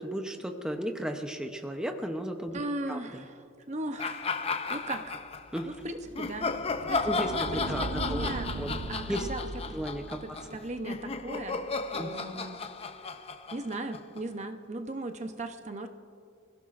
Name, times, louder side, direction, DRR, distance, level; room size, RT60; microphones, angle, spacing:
voice 1, 0.0-2.6 2.9-3.2 5.5-5.7 7.0-8.8 9.1-9.3 9.7-10.2 12.0-12.1, equal, 5° right, 4 dB, 0.7 m, -34 dB
voice 2, 2.5-4.4 4.7-5.2 5.6-6.5 6.9-8.6 8.9-9.8 10.2-11.6 11.9-12.6 13.5-15.9, right 2 dB, 35° right, 7 dB, 0.8 m, -38 dB
sound 1, 4.0-5.6 6.1-14.4, left 4 dB, 30° left, 0.6 m, -34 dB
sound 2, 5.3-12.2, right 2 dB, 70° right, 0.9 m, -40 dB
28.0 x 16.0 x 2.5 m, 2.4 s
head